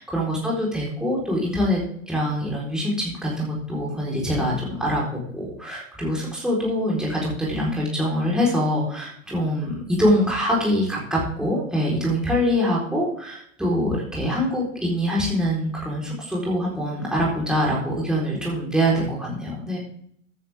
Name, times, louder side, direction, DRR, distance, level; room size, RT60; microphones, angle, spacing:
voice 1, 0.0-19.8, equal, ahead, -5 dB, 4.4 m, -24 dB
13.5 x 10.0 x 3.7 m, 0.65 s
figure-of-eight pair, 105°, 40 cm